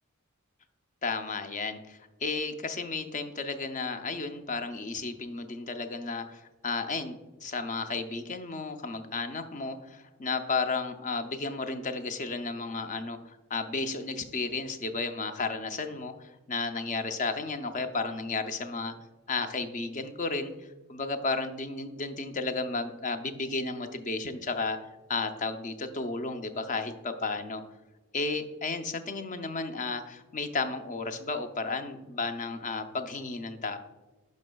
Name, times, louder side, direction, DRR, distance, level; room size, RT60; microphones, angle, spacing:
voice 1, 1.0-18.9 19.3-20.5 20.9-24.8 25.1-27.6 28.1-33.8, left 3 dB, 35° left, 8 dB, 0.6 m, -33 dB
11.0 x 5.3 x 2.3 m, 1.2 s
head